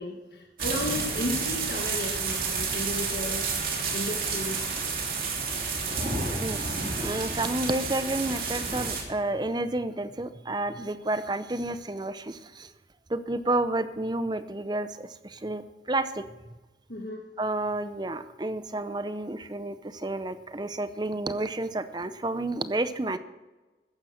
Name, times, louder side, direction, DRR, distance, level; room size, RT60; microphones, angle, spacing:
voice 1, 0.0-4.7 16.9-17.2, left 2 dB, 65° left, 0 dB, 1.5 m, -34 dB
sound 1, 0.6-9.0, right 4 dB, 50° right, 3.1 m, -30 dB
voice 2, 7.0-12.7 13.1-16.2 17.4-23.2, right 2 dB, 25° right, 12 dB, 0.6 m, -30 dB
14.0 x 10.0 x 6.5 m, 1.2 s
head